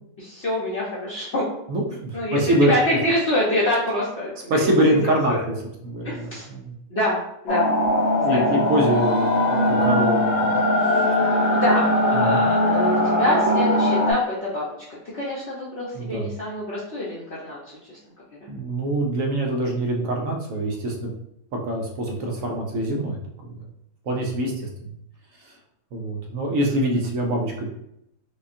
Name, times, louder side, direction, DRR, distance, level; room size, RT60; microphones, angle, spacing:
voice 1, 0.2-1.4 2.1-4.7 5.3-5.4 6.0-6.4 6.9-7.2 7.4-7.7 8.3-8.4 11.5-11.9 12.2-14.6 15.1-17.6 17.9-18.0, left 1 dB, 50° left, -7 dB, 1.0 m, -25 dB
voice 2, 1.7-2.7 4.5-5.6 5.8-6.7 8.2-10.5 10.8-11.1 12.1-12.4 15.9-16.3 18.5-21.1 21.6-23.2 23.5-23.6 24.1-24.9 25.4-25.5 25.9-27.7, right 1 dB, 65° right, 0 dB, 0.9 m, -24 dB
sound 1, 7.5-14.1, left 1 dB, 70° left, 1.4 m, -20 dB
5.1 x 2.3 x 2.6 m, 0.77 s
omnidirectional pair, 1.8 m